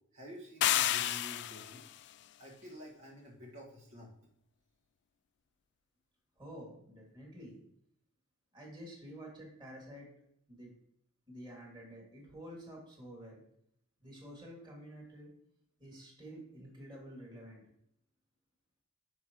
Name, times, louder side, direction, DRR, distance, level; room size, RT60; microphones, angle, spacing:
voice 1, 0.1-1.8 2.4-4.1, equal, 65° right, -3 dB, 2.0 m, -50 dB
sound 1, 0.6-1.9, left 13 dB, 55° left, 0.3 m, -30 dB
voice 2, 6.4-7.6 8.5-10.1 10.5-10.7 11.3-13.4 14.0-15.3 15.8-17.6, equal, 20° right, -2 dB, 2.6 m, -49 dB
10.5 x 5.6 x 3.1 m, 0.70 s
head